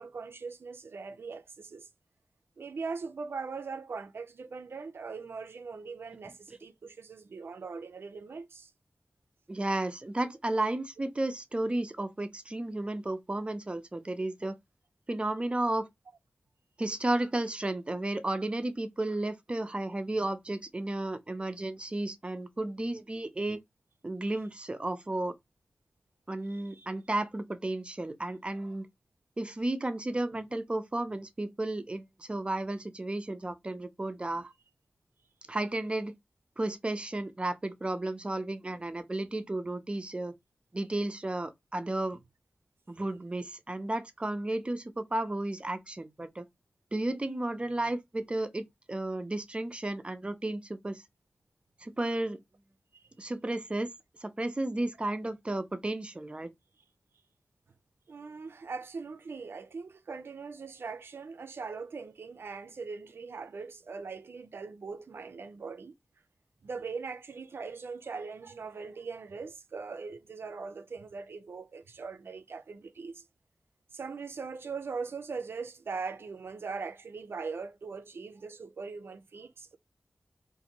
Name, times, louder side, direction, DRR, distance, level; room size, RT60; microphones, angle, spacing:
voice 1, 0.0-1.9 2.6-8.7 26.5-26.9 52.9-53.0 58.1-65.9 66.6-73.3 73.9-79.8, right 4 dB, 80° right, 0.5 m, -41 dB
voice 2, 9.5-14.6 15.1-15.9 16.8-23.6 24.0-25.3 26.3-28.9 29.4-34.5 35.5-36.1 36.6-40.3 40.7-42.2 42.9-46.4 46.9-51.0 51.8-52.4 53.2-53.9 54.2-56.5, right 2 dB, 30° right, 0.6 m, -33 dB
3.9 x 2.6 x 2.8 m
wide cardioid pair, 75°, 4 cm